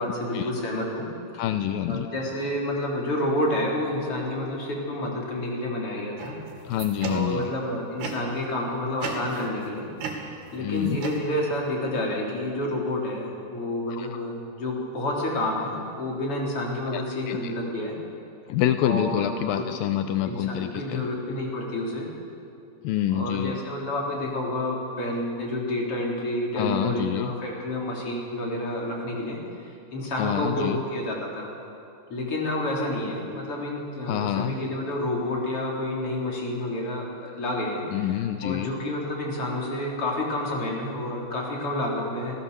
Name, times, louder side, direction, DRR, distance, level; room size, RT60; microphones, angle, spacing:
voice 1, 0.0-1.4 1.9-6.4 7.0-9.9 10.5-18.0 18.8-19.7 20.2-22.1 23.1-31.5 32.1-38.1 38.4-42.4, left 1 dB, 35° left, -2 dB, 4.3 m, -29 dB
voice 2, 1.4-2.1 6.7-7.5 10.6-11.0 13.9-14.1 16.9-17.5 18.5-21.1 22.8-23.6 26.6-27.3 30.2-30.8 34.1-34.5 37.9-38.7, left 11 dB, 80° left, 9 dB, 2.1 m, -27 dB
sound 1, 6.2-7.5 8.0-8.5 9.0-9.7 10.0-11.7, right 5 dB, 70° right, 4.1 m, -37 dB
27.0 x 17.5 x 7.0 m, 2.6 s
omnidirectional pair, 4.8 m